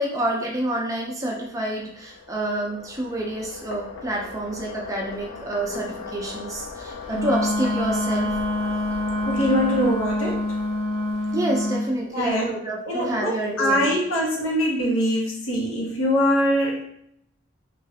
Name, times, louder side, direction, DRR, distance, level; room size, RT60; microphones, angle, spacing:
voice 1, 0.0-8.3 11.3-13.9, right 1 dB, 15° right, -2 dB, 0.4 m, -28 dB
sound 1, 1.4-12.0, left 4 dB, 65° left, 0.4 m, -39 dB
Wind instrument woodwind instrument, 7.1-11.9, left 1 dB, 50° right, 0.7 m, -26 dB
voice 2, 9.2-10.5 12.1-12.6 12.8-16.8, equal, 85° left, -1 dB, 0.8 m, -23 dB
3.0 x 2.3 x 2.7 m, 0.71 s
head